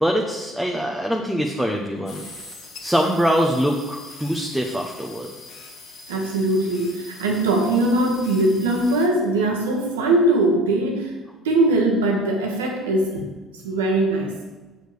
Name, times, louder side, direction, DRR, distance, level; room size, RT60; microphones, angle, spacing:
voice 1, 0.0-2.2 2.8-5.3, equal, ahead, 0 dB, 1.0 m, -23 dB
sound 1, 2.1-9.1, left 3 dB, 65° left, 1.5 m, -42 dB
voice 2, 6.1-11.1 11.4-13.3 13.6-14.3, right 2 dB, 85° right, 1 dB, 1.4 m, -21 dB
6.6 x 6.3 x 5.1 m, 1.2 s
hypercardioid pair, 60°, 0 cm